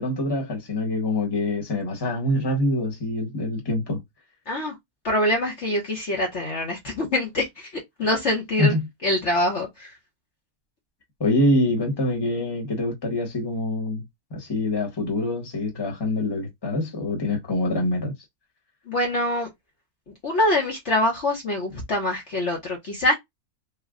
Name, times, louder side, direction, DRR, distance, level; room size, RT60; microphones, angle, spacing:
voice 1, 0.0-4.0 8.6-8.8 11.2-14.0 14.3-18.1, left 1 dB, 15° left, 1.1 m, -25 dB
voice 2, 4.5-4.8 5.0-8.7 9.0-9.9 18.9-19.5 20.2-23.1, left 1 dB, 50° left, 1.1 m, -24 dB
3.2 x 2.2 x 3.7 m
omnidirectional pair, 1.6 m